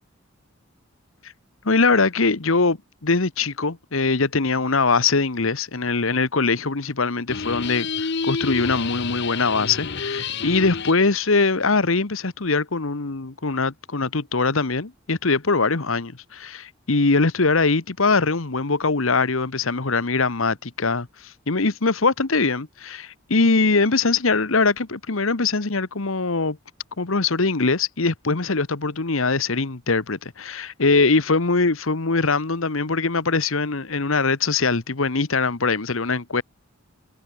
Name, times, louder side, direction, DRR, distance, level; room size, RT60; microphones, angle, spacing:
voice 1, 1.6-26.6 27.0-36.4, left 4 dB, 70° left, 1.3 m, -22 dB
sound 1, 7.3-11.1, left 5 dB, 55° left, 0.9 m, -29 dB
head